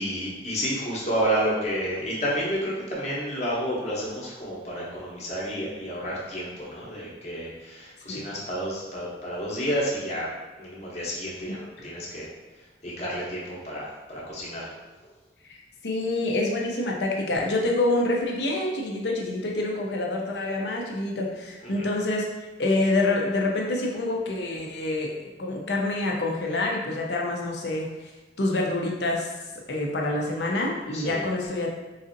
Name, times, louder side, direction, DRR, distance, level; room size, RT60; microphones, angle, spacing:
voice 1, 0.0-10.3 10.6-12.3 12.8-14.7 21.7-21.9 30.9-31.2, equal, 40° left, -5 dB, 0.9 m, -30 dB
voice 2, 15.8-22.3 22.6-25.1 25.4-27.9 28.4-29.3 29.7-31.7, left 2 dB, 70° left, -1 dB, 0.6 m, -26 dB
4.0 x 2.6 x 2.6 m, 1.2 s
head